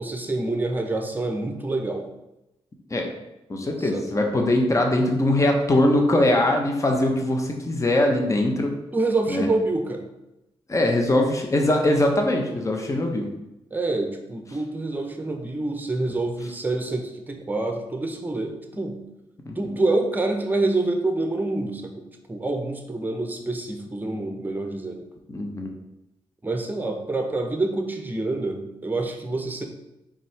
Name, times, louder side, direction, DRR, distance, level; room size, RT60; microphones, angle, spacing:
voice 1, 0.0-2.1 3.8-4.1 8.9-10.0 13.7-19.0 19.6-25.0 26.4-29.6, right 2 dB, 15° right, 4 dB, 0.8 m, -27 dB
voice 2, 3.5-8.8 9.3-9.5 10.7-13.3 19.5-19.6 25.3-25.7, left 1 dB, 30° left, 3 dB, 0.8 m, -21 dB
4.2 x 3.6 x 3.3 m, 0.92 s
cardioid pair, 60°, 10 cm